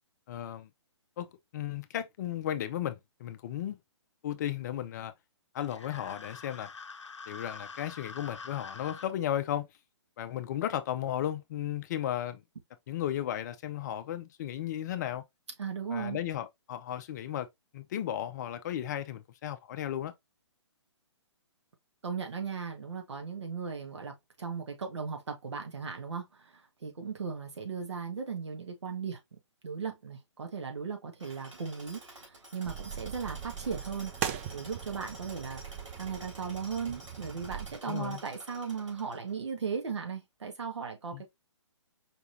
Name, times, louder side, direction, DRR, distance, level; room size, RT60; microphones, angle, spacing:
voice 1, 0.3-0.7 1.2-1.3 1.5-3.8 4.2-5.1 5.5-6.7 7.3-9.7 10.2-12.4 12.9-15.2 15.9-17.5 17.7-20.1 37.9-38.2 41.1-41.2, left 11 dB, 35° left, 0.6 m, -34 dB
sound 1, 5.6-9.1, left 5 dB, 75° left, 0.7 m, -46 dB
voice 2, 15.6-16.2 22.0-29.2 29.6-35.6 36.0-41.3, right 6 dB, 70° right, 1.6 m, -37 dB
Tools, 31.2-39.5, right 1 dB, 85° right, 3.4 m, -50 dB
sound 2, 32.6-37.8, right 9 dB, 25° right, 0.5 m, -40 dB
5.1 x 3.5 x 2.7 m
figure-of-eight pair, 130°, 15 cm